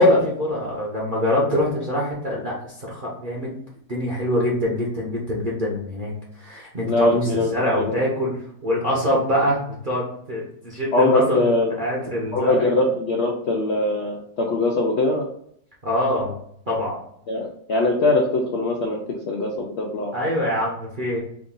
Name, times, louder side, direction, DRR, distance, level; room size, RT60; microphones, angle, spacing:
voice 1, 0.0-3.5 3.9-12.7 15.8-16.4 16.7-17.0 20.1-21.2, left 1 dB, 40° right, -4 dB, 0.8 m, -24 dB
voice 2, 6.9-8.0 10.9-11.7 12.3-15.2 17.3-19.0 19.3-20.2, left 2 dB, 75° left, 0 dB, 0.6 m, -22 dB
3.6 x 2.5 x 3.8 m, 0.67 s
omnidirectional pair, 1.8 m